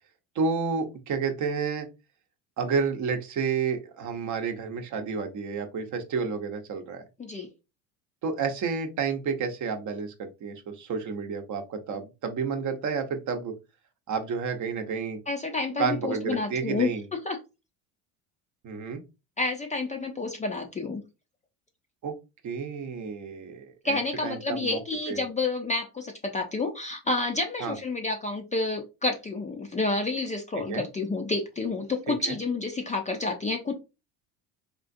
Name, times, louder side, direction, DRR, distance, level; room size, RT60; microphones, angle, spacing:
voice 1, 0.3-1.9 2.6-7.0 8.2-13.5 14.1-15.2 15.8-17.0 18.6-19.0 22.0-22.2 22.4-24.8 25.1-25.2 27.6-27.8 30.7-30.8 32.1-32.4, right 5 dB, 45° right, 6 dB, 0.8 m, -30 dB
voice 2, 15.3-17.4 19.4-21.0 23.8-33.8, left 3 dB, 20° left, 3 dB, 0.4 m, -29 dB
3.7 x 2.4 x 2.5 m, 0.27 s
supercardioid pair, 90°, 43 cm